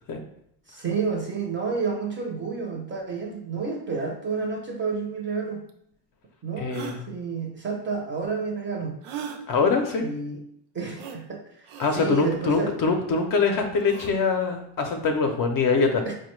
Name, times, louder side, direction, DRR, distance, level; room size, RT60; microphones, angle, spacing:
voice 1, 0.7-5.6 6.4-9.0 10.0-10.4 10.7-12.7 16.1-16.2, right 4 dB, 25° right, 1 dB, 0.5 m, -30 dB
sound 1, 5.7-5.8 6.7-7.0 9.0-9.4 11.0-11.2 11.7-11.9 13.8-14.1, right 7 dB, 80° right, 0.6 m, -37 dB
voice 2, 6.6-7.0 9.5-10.1 11.8-16.0, left 4 dB, 45° left, 4 dB, 0.4 m, -23 dB
4.9 x 2.2 x 3.0 m, 0.73 s
cardioid pair, 140°, 50 cm